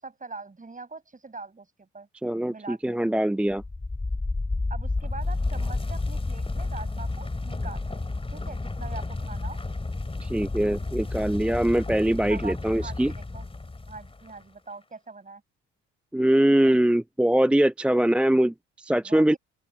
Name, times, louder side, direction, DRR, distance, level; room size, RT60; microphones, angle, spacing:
voice 1, 0.0-2.1 2.5-3.0 4.7-8.0 8.3-9.6 12.3-13.5 13.9-15.4 19.0-19.4, right 3 dB, 25° right, 6.8 m, -42 dB
voice 2, 2.2-3.6 10.2-13.1 16.1-19.4, right 1 dB, 5° right, 0.4 m, -22 dB
sound 1, 3.5-14.3, left 2 dB, 20° left, 2.9 m, -31 dB
open air
supercardioid pair, 65°, 32 cm